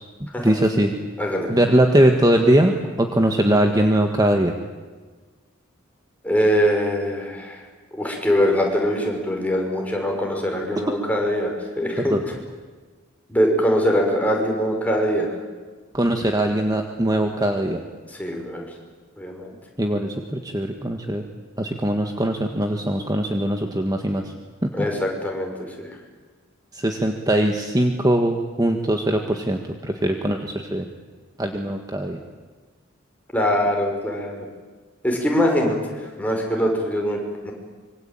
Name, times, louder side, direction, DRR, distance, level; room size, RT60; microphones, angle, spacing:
voice 1, 0.2-0.9 1.5-4.5 12.0-12.2 15.9-17.8 19.8-21.2 21.6-24.2 24.6-24.7 26.7-30.9 31.4-32.2, right 1 dB, 20° right, 4 dB, 1.7 m, -21 dB
voice 2, 1.2-1.5 6.2-7.6 7.9-12.2 13.3-15.3 18.1-18.7 19.2-19.5 24.7-25.9 33.3-34.5 35.0-35.8 36.2-37.5, equal, 10° left, 1 dB, 5.9 m, -22 dB
25.5 x 25.0 x 9.1 m, 1.4 s
head